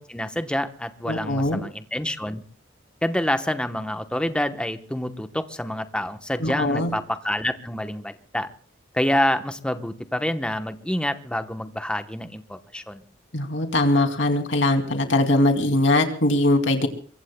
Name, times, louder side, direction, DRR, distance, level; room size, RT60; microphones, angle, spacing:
voice 1, 0.0-2.4 3.0-8.5 8.9-13.0, left 1 dB, 5° left, 8 dB, 0.9 m, -27 dB
voice 2, 1.1-1.6 6.4-6.9 13.3-16.9, left 1 dB, 70° left, 4 dB, 2.6 m, -21 dB
25.0 x 23.0 x 2.2 m, 0.43 s
head